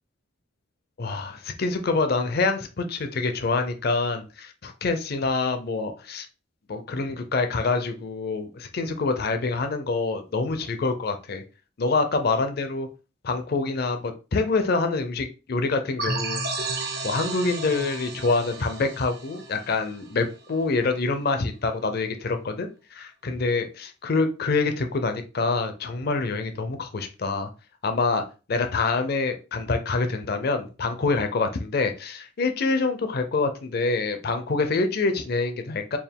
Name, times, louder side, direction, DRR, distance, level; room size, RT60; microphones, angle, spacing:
voice 1, 1.0-6.3 6.7-11.4 11.8-12.9 13.2-16.4 17.0-27.5 27.8-36.0, left 3 dB, 50° left, 7 dB, 0.5 m, -26 dB
sound 1, 16.0-20.5, right 3 dB, 55° right, 0.7 m, -32 dB
4.4 x 2.3 x 3.5 m, 0.32 s
head